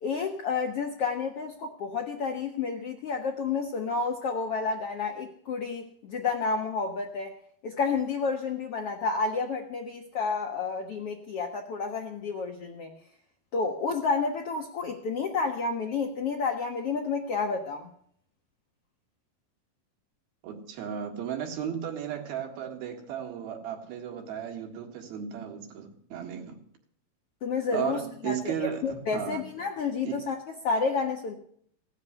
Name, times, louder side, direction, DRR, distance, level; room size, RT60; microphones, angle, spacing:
voice 1, 0.0-7.3 7.6-12.9 13.5-17.9 27.4-28.0 28.2-28.5 28.8-31.3, left 4 dB, 70° left, 1.4 m, -30 dB
voice 2, 20.4-26.6 27.7-29.4 30.1-30.2, right 9 dB, 85° right, 3.8 m, -35 dB
17.5 x 7.4 x 9.3 m
omnidirectional pair, 4.2 m